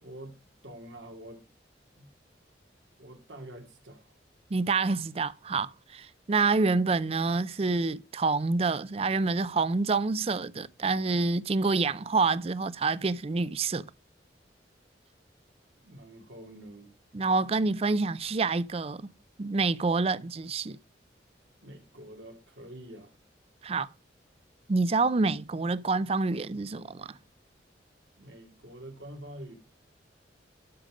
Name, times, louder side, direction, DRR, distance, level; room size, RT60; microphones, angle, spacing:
voice 1, 0.0-1.5 2.0-2.1 3.0-4.1 15.8-16.9 21.6-23.2 28.2-29.6, right 1 dB, 85° right, 2.5 m, -46 dB
voice 2, 4.5-13.9 17.1-19.1 19.4-20.8 23.6-23.9 24.7-27.2, right 3 dB, 30° right, 0.4 m, -27 dB
12.5 x 5.2 x 5.1 m
head